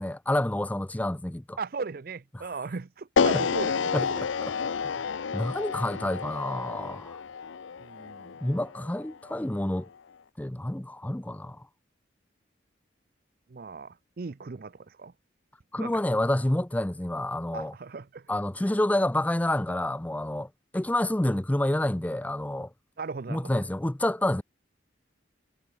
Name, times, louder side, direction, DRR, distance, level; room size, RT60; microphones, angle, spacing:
voice 1, 0.0-1.6 2.3-2.4 3.3-3.4 3.9-4.1 4.6-5.0 5.3-7.2 8.4-9.9 10.4-11.6 15.7-17.7 18.3-20.5 20.7-22.7 23.3-24.4, left 1 dB, 10° left, 0.4 m, -28 dB
voice 2, 1.6-4.2 6.7-7.0 7.8-8.4 13.5-15.1 15.8-16.0 17.5-18.3 23.0-23.6, right 4 dB, 50° right, 0.5 m, -37 dB
sound 1, 3.2-9.3, left 6 dB, 85° left, 0.5 m, -30 dB
head